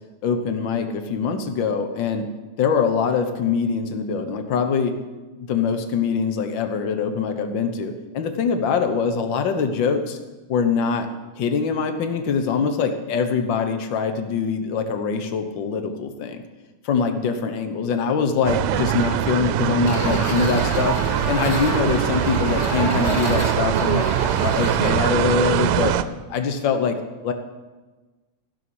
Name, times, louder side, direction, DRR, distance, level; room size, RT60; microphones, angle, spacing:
voice 1, 0.2-2.3 2.6-5.0 5.4-10.2 10.5-11.1 11.4-16.4 16.8-21.0 21.2-24.1 24.4-25.9 26.3-27.0 27.2-27.3, left 5 dB, 70° left, 7 dB, 1.1 m, -23 dB
sound 1, 18.5-26.0, right 11 dB, 85° right, 2.2 m, -22 dB
sound 2, 19.9-24.7, left 1 dB, 25° left, 2.3 m, -29 dB
15.5 x 6.8 x 8.6 m, 1.2 s
omnidirectional pair, 3.6 m